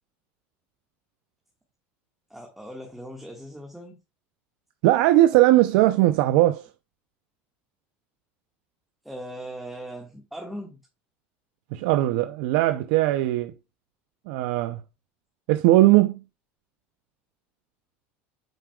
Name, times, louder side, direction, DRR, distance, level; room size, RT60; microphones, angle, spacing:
voice 1, 2.3-4.0 9.0-10.8, equal, ahead, 1.5 m, -39 dB
voice 2, 4.8-6.6 11.7-13.5 14.3-14.8 15.5-16.2, right 16 dB, 75° right, 0.5 m, -19 dB
9.1 x 4.8 x 2.3 m
supercardioid pair, 125°, 6 cm